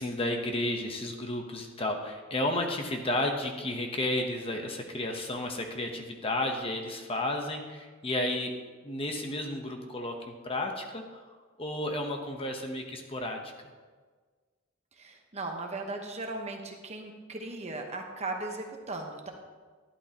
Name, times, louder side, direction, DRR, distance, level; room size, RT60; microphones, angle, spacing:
voice 1, 0.0-8.5 8.8-13.4, left 1 dB, 25° left, 3 dB, 0.9 m, -32 dB
voice 2, 14.9-19.3, right 2 dB, 30° right, 3 dB, 1.1 m, -37 dB
11.5 x 11.5 x 2.9 m, 1.4 s
head